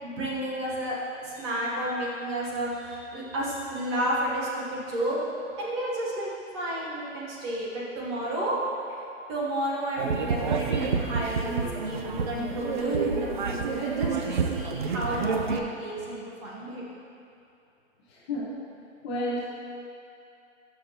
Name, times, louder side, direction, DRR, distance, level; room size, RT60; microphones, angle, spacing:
voice 1, 0.0-5.2 5.6-6.3 6.5-8.6 9.3-16.8, right 1 dB, 20° right, -5 dB, 1.0 m, -31 dB
sound 1, 10.0-15.6, right 5 dB, 40° right, 0.4 m, -29 dB
voice 2, 18.1-18.5 19.0-19.5, left 1 dB, 20° left, -5 dB, 0.8 m, -31 dB
13.0 x 5.8 x 2.8 m, 2.7 s
hypercardioid pair, 155°, 39 cm